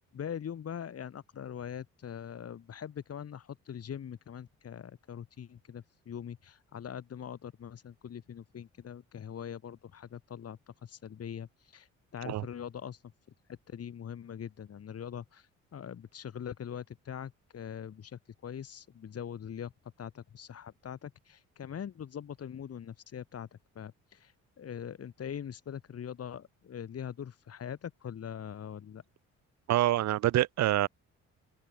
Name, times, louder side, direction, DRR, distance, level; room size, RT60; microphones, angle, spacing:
voice 1, 0.1-13.1 13.5-15.5 15.7-19.7 20.0-29.0, left 8 dB, 55° left, 2.7 m, -42 dB
voice 2, 29.7-30.9, right 14 dB, 65° right, 0.7 m, -26 dB
open air
cardioid pair, 90°, 30 cm